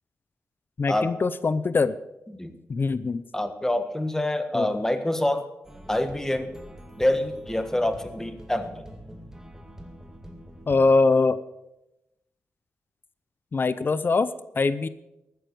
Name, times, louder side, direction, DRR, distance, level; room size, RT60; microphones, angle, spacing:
voice 1, 0.8-1.9 2.7-3.2 4.5-4.7 10.7-11.4 13.5-14.9, left 3 dB, 45° left, 15 dB, 0.6 m, -22 dB
voice 2, 3.3-5.5 5.9-6.6 7.0-8.9, left 1 dB, 10° left, 9 dB, 1.5 m, -26 dB
sound 1, 5.6-10.9, equal, 10° right, 2.0 m, -44 dB
14.0 x 9.6 x 6.8 m, 0.90 s
cardioid pair, 85°, 5 cm